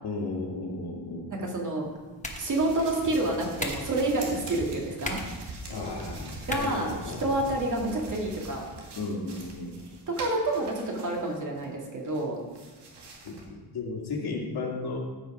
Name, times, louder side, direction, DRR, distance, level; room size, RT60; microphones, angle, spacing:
voice 1, 0.0-1.3 5.6-7.2 9.0-9.8 13.2-15.0, left 3 dB, 65° left, -1 dB, 2.3 m, -34 dB
voice 2, 1.3-1.9 2.4-5.2 6.4-8.6 10.1-12.4, right 2 dB, 45° right, -1 dB, 2.3 m, -28 dB
sound 1, 1.7-7.7, left 2 dB, 20° left, 1.2 m, -41 dB
sound 2, 2.3-11.7 12.0-13.4, right 2 dB, 80° right, 2.2 m, -43 dB
14.5 x 5.7 x 5.0 m, 1.3 s
wide cardioid pair, 140°, 40 cm